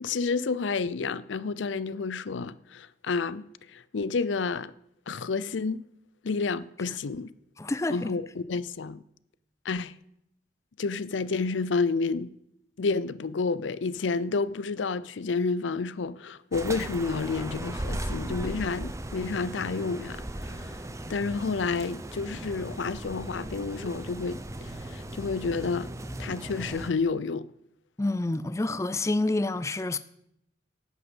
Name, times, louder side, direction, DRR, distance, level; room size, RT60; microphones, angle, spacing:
voice 1, 0.0-3.5 3.7-4.7 5.1-5.8 6.2-7.3 7.9-9.0 9.6-9.9 10.8-12.3 12.8-20.8 21.1-25.9 26.2-27.5, left 4 dB, 85° left, 0.5 m, -30 dB
voice 2, 7.6-8.1 28.0-30.0, left 2 dB, 15° left, 0.4 m, -28 dB
sound 1, 16.5-26.9, right 1 dB, 15° right, 0.7 m, -37 dB
11.0 x 7.9 x 8.1 m
head